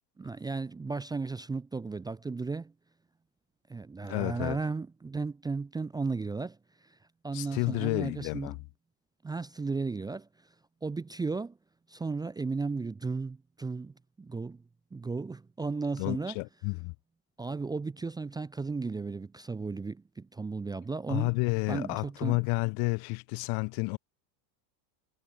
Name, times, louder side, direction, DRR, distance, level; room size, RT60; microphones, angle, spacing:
voice 1, 0.2-2.7 3.7-7.0 7.2-8.6 9.2-10.3 10.8-11.6 11.9-14.6 14.9-16.4 17.4-21.3 21.7-22.4, right 4 dB, 10° right, 0.8 m, -35 dB
voice 2, 4.1-4.6 7.3-8.6 16.0-16.9 21.1-24.0, left 31 dB, 50° left, 1.3 m, -31 dB
supercardioid pair, 145°, 50 cm